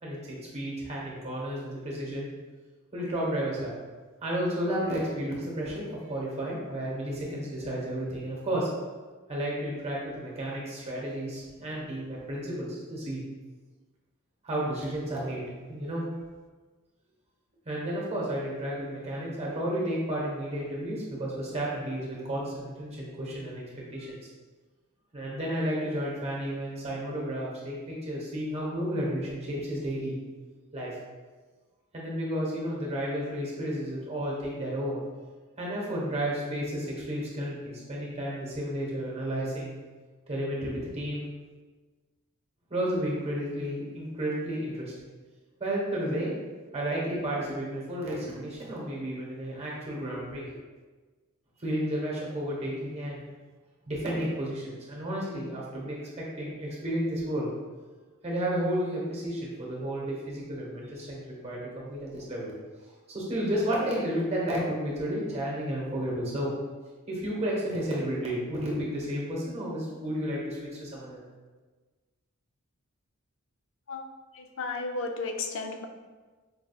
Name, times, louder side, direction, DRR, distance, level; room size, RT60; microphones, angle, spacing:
voice 1, 0.0-2.3 2.9-3.8 4.2-8.7 9.3-13.2 14.4-16.0 17.6-23.6 23.9-24.1 25.1-30.1 30.7-31.0 31.9-35.0 35.6-39.7 40.3-41.2 42.7-44.9 45.6-46.3 46.7-50.5 51.6-53.2 53.9-57.5 58.2-62.5 63.1-66.5 67.1-71.2, right 1 dB, 30° right, -4 dB, 1.0 m, -32 dB
voice 2, 74.3-75.9, left 3 dB, 60° left, 4 dB, 0.4 m, -34 dB
4.7 x 3.5 x 2.3 m, 1.3 s
head